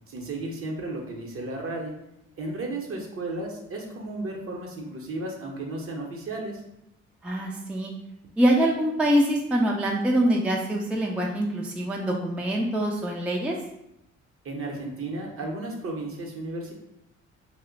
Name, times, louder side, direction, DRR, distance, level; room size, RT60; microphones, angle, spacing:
voice 1, 0.1-1.9 2.4-6.6 14.4-16.7, right 2 dB, 45° right, 0 dB, 0.8 m, -34 dB
voice 2, 7.2-7.9 8.4-13.6, right 1 dB, 5° right, -1 dB, 0.4 m, -24 dB
2.8 x 2.1 x 3.8 m, 0.83 s
cardioid pair, 90°, 30 cm